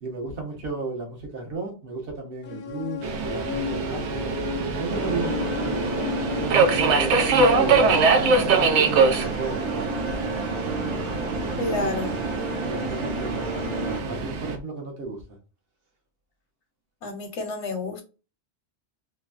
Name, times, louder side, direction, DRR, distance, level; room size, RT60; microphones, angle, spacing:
voice 1, 0.0-4.4 4.8-5.8 6.4-8.3 8.5-9.9 11.6-12.0 12.7-15.2, right 3 dB, 55° right, 1.1 m, -34 dB
sound 1, 2.5-8.4, left 10 dB, 60° left, 0.6 m, -34 dB
Subway metro underground, 3.0-14.6, right 4 dB, 80° right, 0.9 m, -24 dB
sound 2, 4.9-14.0, right 2 dB, 30° right, 0.6 m, -32 dB
voice 2, 11.6-12.1 17.0-18.0, left 3 dB, 85° left, 1.2 m, -29 dB
3.2 x 2.1 x 2.4 m
omnidirectional pair, 1.2 m